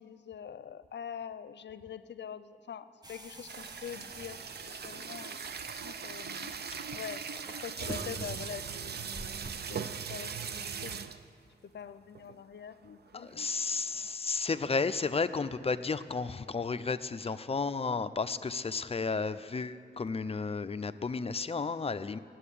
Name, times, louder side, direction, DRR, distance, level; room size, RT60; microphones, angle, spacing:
voice 1, 0.0-6.6 6.9-9.0 9.7-11.1 11.6-13.5 17.2-17.4, left 8 dB, 75° left, 13 dB, 0.6 m, -45 dB
sound 1, 3.0-9.5, right 1 dB, 20° right, 0.9 m, -49 dB
sound 2, 3.5-11.3 11.9-12.0 12.2-12.4 12.8-14.1, right 6 dB, 65° right, 0.6 m, -40 dB
voice 2, 13.1-22.2, left 4 dB, 35° left, 12 dB, 0.5 m, -33 dB
16.0 x 7.8 x 10.0 m, 2.5 s
wide cardioid pair, 115°, 18 cm